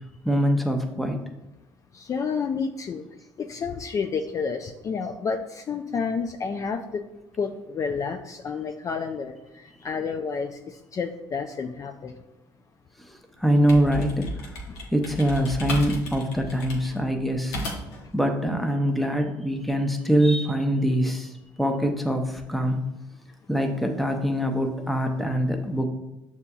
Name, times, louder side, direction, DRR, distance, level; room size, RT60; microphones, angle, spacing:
voice 1, 0.2-1.2 13.0-14.6 14.9-17.6 18.1-22.8 23.5-25.9, equal, ahead, 4 dB, 0.7 m, -24 dB
voice 2, 1.9-3.0 3.4-7.0 7.4-12.1, left 5 dB, 35° left, 6 dB, 0.3 m, -30 dB
sound 1, 13.4-18.1, equal, 85° left, 0.9 m, -34 dB
6.7 x 2.8 x 2.3 m, 0.94 s
supercardioid pair, 75°, 9 cm